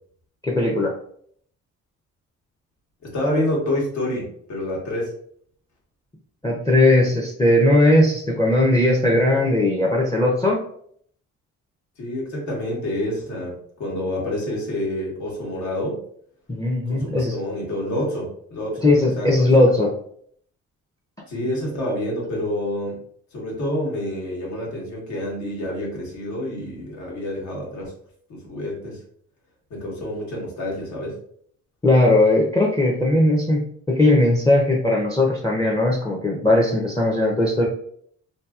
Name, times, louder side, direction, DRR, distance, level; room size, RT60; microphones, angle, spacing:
voice 1, 0.4-0.9 6.4-10.6 16.5-17.4 18.8-19.9 31.8-37.7, left 1 dB, 10° left, -1 dB, 0.5 m, -18 dB
voice 2, 3.0-5.1 12.0-16.0 16.9-19.5 21.3-23.0 23.3-27.9 28.3-29.0 29.7-31.2, left 1 dB, 70° left, -2 dB, 1.2 m, -28 dB
2.7 x 2.7 x 2.3 m, 0.63 s
cardioid pair, 90°, 30 cm